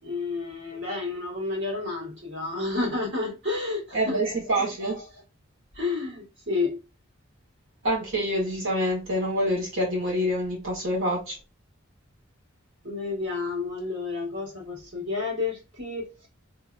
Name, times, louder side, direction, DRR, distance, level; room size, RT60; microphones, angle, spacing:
voice 1, 0.0-5.1 5.7-6.8 12.8-16.3, left 3 dB, 60° right, 2.1 m, -31 dB
voice 2, 3.9-5.0 7.8-11.4, equal, 75° right, 1.7 m, -26 dB
3.6 x 3.2 x 2.6 m
head